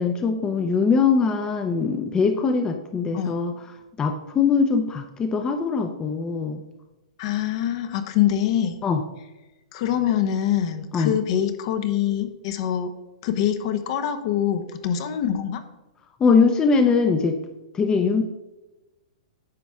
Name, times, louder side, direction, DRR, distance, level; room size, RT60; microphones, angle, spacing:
voice 1, 0.0-3.5 4.0-6.6 8.8-9.0 10.9-11.1 16.2-17.3 17.7-18.2, left 5 dB, 20° left, 6 dB, 0.6 m, -21 dB
voice 2, 7.2-8.8 9.7-12.9 13.2-15.6, left 10 dB, 50° left, 8 dB, 1.0 m, -24 dB
9.7 x 6.1 x 3.5 m, 1.0 s
hypercardioid pair, 130°, 4 cm